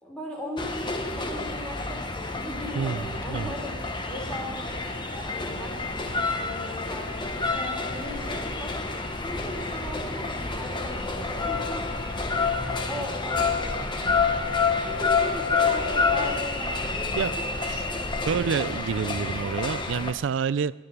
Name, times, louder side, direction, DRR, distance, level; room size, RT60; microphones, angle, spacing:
voice 1, 0.0-8.7 9.2-11.9 12.4-13.5 14.0-14.2 14.9-17.7, equal, 5° left, -4 dB, 3.4 m, -39 dB
sound 1, 0.6-20.1, left 4 dB, 25° left, 1.0 m, -28 dB
voice 2, 2.7-3.5 17.1-17.3 17.6-17.9 18.2-20.7, right 6 dB, 80° right, 18 dB, 0.4 m, -28 dB
14.0 x 7.8 x 9.4 m, 1.2 s
head